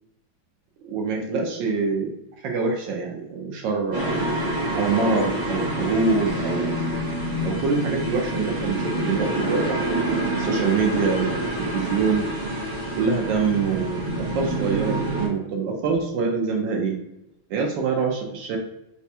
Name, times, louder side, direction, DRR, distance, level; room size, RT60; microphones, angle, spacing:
voice 1, 0.8-2.1 2.4-4.2 4.7-6.8 7.4-12.3 13.0-14.0 14.3-16.9 17.5-18.6, right 4 dB, 75° right, 1 dB, 1.2 m, -25 dB
sound 1, 3.9-15.3, right 1 dB, 20° right, 0.6 m, -27 dB
4.2 x 2.1 x 2.7 m, 0.88 s
omnidirectional pair, 2.2 m